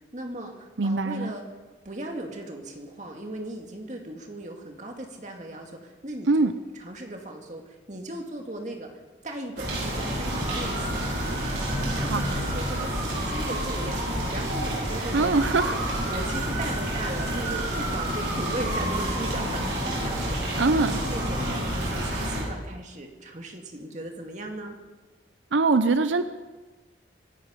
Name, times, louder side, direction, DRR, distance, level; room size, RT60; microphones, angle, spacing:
voice 1, 0.0-1.4 1.8-8.9 9.2-11.1 11.8-15.8 16.0-20.5 20.8-24.8, right 1 dB, 40° right, 2 dB, 2.2 m, -37 dB
voice 2, 0.8-1.3 6.3-6.5 12.0-12.2 15.1-15.8 20.6-21.0 25.5-26.2, right 3 dB, 90° right, 11 dB, 0.6 m, -22 dB
sound 1, 9.6-22.4, right 1 dB, 65° right, 5.2 m, -29 dB
25.0 x 10.5 x 5.3 m, 1.2 s
head